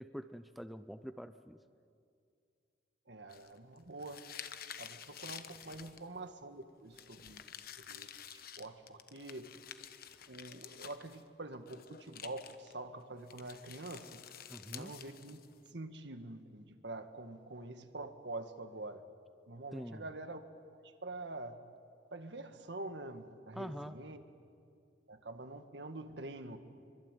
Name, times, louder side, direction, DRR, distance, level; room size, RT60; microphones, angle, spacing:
voice 1, 0.0-1.6 14.5-14.9 19.7-20.0 23.5-24.0, equal, ahead, 10 dB, 0.6 m, -45 dB
voice 2, 3.1-4.3 4.8-7.4 7.8-9.5 10.3-14.2 14.7-15.4 15.7-19.0 19.5-20.4 20.8-21.6 22.1-24.2 25.1-26.6, right 2 dB, 70° right, 8 dB, 1.8 m, -46 dB
Paper and pencil shuffling full, 3.3-6.2 6.9-11.3 11.5-12.7 13.3-15.7, left 9 dB, 55° left, 1.2 m, -50 dB
24.5 x 24.5 x 9.2 m, 2.3 s
head